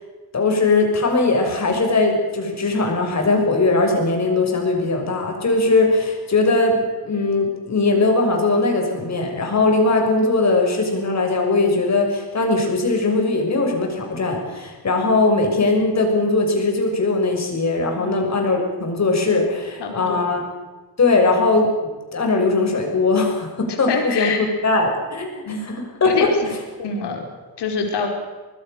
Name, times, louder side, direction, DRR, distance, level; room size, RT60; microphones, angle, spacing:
voice 1, 0.3-20.4 21.0-21.7 22.1-26.1, left 3 dB, 40° left, 2 dB, 6.4 m, -20 dB
voice 2, 19.8-20.2 23.9-24.4 25.5-26.3 26.8-27.2 27.6-28.1, left 5 dB, 85° left, 3 dB, 4.8 m, -26 dB
25.0 x 20.0 x 6.8 m, 1.2 s
cardioid pair, 125°, 40 cm